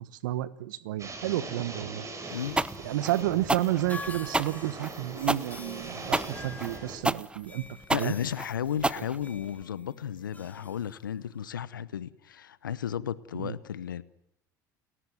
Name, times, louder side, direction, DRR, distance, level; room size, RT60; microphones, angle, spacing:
voice 1, 0.0-2.1 2.8-7.6 7.9-8.1 9.0-9.1 13.4-13.5, right 14 dB, 75° right, 1.2 m, -31 dB
sound 1, 1.0-7.0, right 3 dB, 30° right, 6.4 m, -41 dB
sound 2, 2.0-11.5, left 3 dB, 15° left, 2.2 m, -47 dB
voice 2, 2.3-2.6 7.9-14.0, left 9 dB, 90° left, 0.9 m, -34 dB
sound 3, 2.6-9.6, right 2 dB, 10° right, 0.8 m, -29 dB
30.0 x 14.0 x 9.7 m
hypercardioid pair, 70°, 10 cm